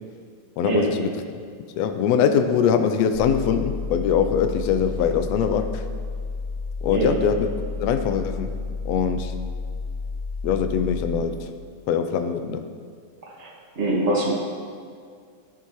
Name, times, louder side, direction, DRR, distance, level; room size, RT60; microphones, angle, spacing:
voice 1, 0.6-1.1 1.8-5.8 6.8-7.5 7.8-8.6 8.8-9.3 10.4-11.5 11.9-12.6, left 7 dB, 80° left, 8 dB, 1.6 m, -22 dB
sound 1, 3.1-11.1, left 4 dB, 70° right, 1.7 m, -31 dB
voice 2, 13.4-14.3, right 2 dB, 30° right, -4 dB, 1.4 m, -24 dB
13.0 x 7.3 x 3.1 m, 2.1 s
omnidirectional pair, 3.4 m